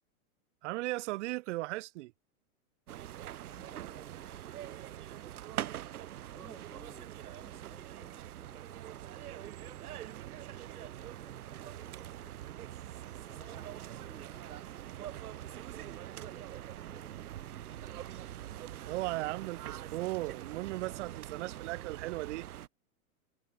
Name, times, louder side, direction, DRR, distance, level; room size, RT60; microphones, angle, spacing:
voice 1, 0.6-2.1 18.9-22.5, right 19 dB, 55° right, 0.7 m, -37 dB
sound 1, 2.9-22.7, right 12 dB, 85° right, 1.7 m, -44 dB
voice 2, 3.5-5.9 6.3-9.8 10.5-12.6 13.1-18.3, left 2 dB, 5° left, 6.1 m, -62 dB
sound 2, 8.4-17.5, right 7 dB, 15° right, 5.8 m, -69 dB
hypercardioid pair, 140°, 43 cm